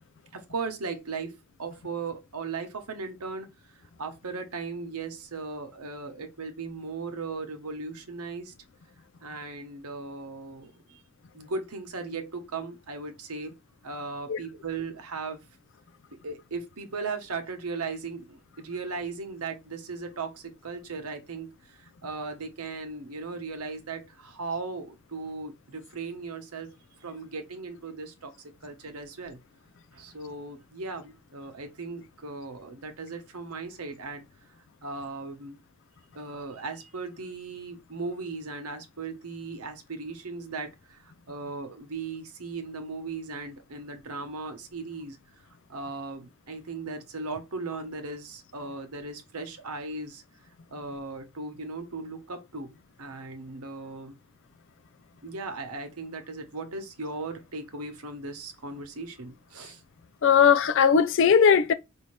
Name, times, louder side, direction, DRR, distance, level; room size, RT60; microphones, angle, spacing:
voice 1, 0.3-8.5 9.2-11.0 11.3-13.5 13.8-15.4 16.1-29.4 29.9-34.2 34.8-35.6 36.1-45.2 45.7-50.2 50.7-54.2 55.2-59.8, right 4 dB, 85° right, 1.0 m, -37 dB
voice 2, 60.2-61.7, left 7 dB, 55° left, 0.4 m, -19 dB
5.0 x 2.8 x 3.2 m
head